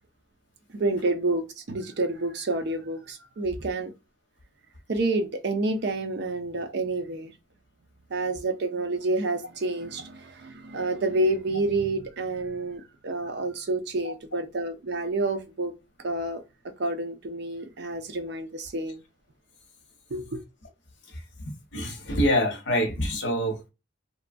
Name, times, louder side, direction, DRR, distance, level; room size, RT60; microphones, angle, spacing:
voice 1, 0.7-3.9 4.9-7.3 8.1-15.7 16.0-16.4 16.8-19.0 20.1-20.4, right 2 dB, 60° right, 0.6 m, -29 dB
voice 2, 21.7-23.7, equal, 75° left, 0.9 m, -25 dB
2.8 x 2.2 x 2.4 m
head